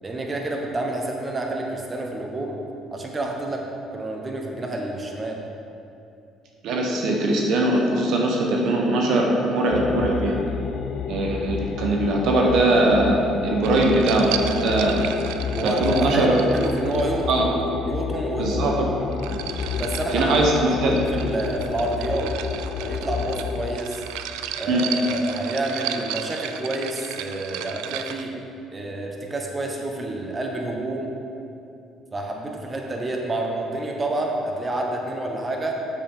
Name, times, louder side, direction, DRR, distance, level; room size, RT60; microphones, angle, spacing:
voice 1, 0.0-2.6 2.9-3.6 3.9-5.4 15.6-17.5 17.9-18.6 19.7-22.3 22.8-24.0 24.5-28.3 28.7-31.1 32.1-35.7, right 2 dB, 30° right, 1 dB, 1.2 m, -28 dB
voice 2, 6.6-10.4 11.1-15.0 15.6-16.3 17.3-17.5 18.4-18.9 19.3-19.4 20.1-21.3 24.7-24.8, right 2 dB, 70° right, 0 dB, 0.9 m, -21 dB
sound 1, 9.7-23.8, left 6 dB, 65° left, 0.4 m, -30 dB
sound 2, 13.6-17.5 18.8-28.3, right 10 dB, 85° right, 0.3 m, -35 dB
7.4 x 7.2 x 3.7 m, 2.6 s
supercardioid pair, 80°, 0 cm